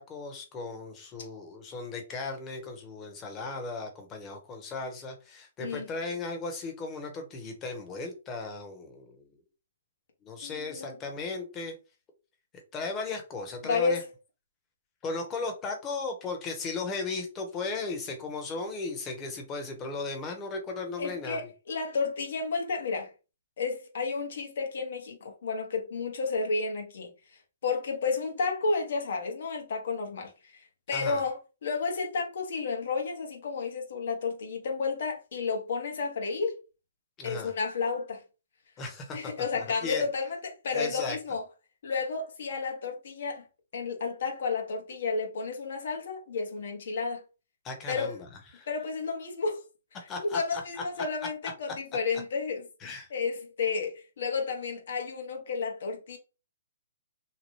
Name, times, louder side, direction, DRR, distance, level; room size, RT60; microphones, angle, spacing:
voice 1, 0.0-9.3 10.2-11.7 12.7-14.0 15.0-21.4 30.9-31.2 37.2-37.5 38.8-40.1 40.7-41.2 47.6-48.3 48.5-48.7 50.1-50.6 52.8-53.1, left 3 dB, 25° left, 1.0 m, -36 dB
voice 2, 10.4-11.0 13.6-14.0 21.0-23.1 23.6-27.1 27.6-30.3 30.9-36.6 37.2-38.2 39.1-41.4 41.8-43.5 43.7-47.2 47.9-48.1 48.7-49.6 50.2-56.2, left 4 dB, 65° left, 1.0 m, -31 dB
2.9 x 2.2 x 3.1 m
hypercardioid pair, 135°, 0 cm